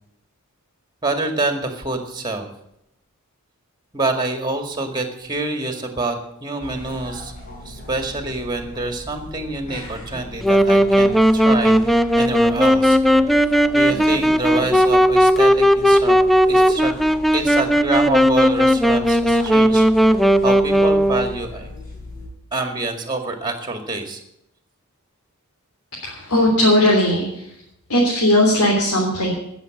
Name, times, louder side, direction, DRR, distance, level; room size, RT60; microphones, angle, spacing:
voice 1, 1.0-2.5 3.9-7.3 7.6-13.0 13.4-17.0 17.3-20.1 20.4-21.7 22.5-24.2, right 2 dB, 20° right, 6 dB, 2.0 m, -26 dB
sound 1, 6.6-22.3, left 1 dB, 40° left, 5.1 m, -38 dB
Wind instrument woodwind instrument, 10.4-21.4, equal, ahead, 0.4 m, -16 dB
voice 2, 26.0-27.2 27.9-29.3, left 1 dB, 85° left, -4 dB, 3.6 m, -17 dB
15.5 x 7.1 x 8.4 m, 0.79 s
head